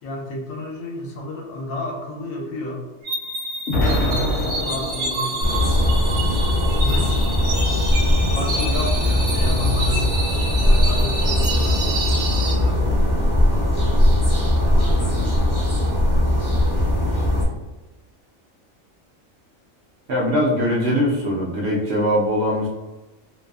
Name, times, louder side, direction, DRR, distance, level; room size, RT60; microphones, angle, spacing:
voice 1, 0.0-2.9 3.8-5.9 6.6-7.1 8.3-10.1 10.6-12.0 12.3-13.1 14.6-15.5, left 1 dB, 80° left, 0 dB, 1.0 m, -31 dB
sound 1, 3.0-12.6, right 2 dB, 85° right, 1.0 m, -29 dB
Explosion, 3.7-5.8, left 1 dB, 65° left, 0.7 m, -24 dB
sound 2, 5.4-17.4, left 1 dB, 20° right, 0.6 m, -19 dB
voice 2, 20.1-22.7, equal, 65° right, -4 dB, 0.7 m, -21 dB
2.6 x 2.3 x 2.3 m, 1.1 s
omnidirectional pair, 1.4 m